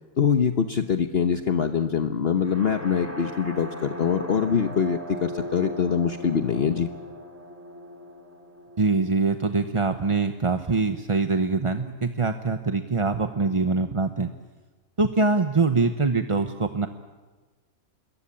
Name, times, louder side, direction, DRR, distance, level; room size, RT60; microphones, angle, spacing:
voice 1, 0.2-6.9, left 7 dB, 50° left, 7 dB, 1.2 m, -24 dB
sound 1, 2.4-10.3, equal, 10° right, 2.6 m, -39 dB
voice 2, 8.8-14.3 15.0-16.9, right 3 dB, 25° right, 7 dB, 0.8 m, -24 dB
26.5 x 22.0 x 8.7 m, 1.3 s
omnidirectional pair, 1.5 m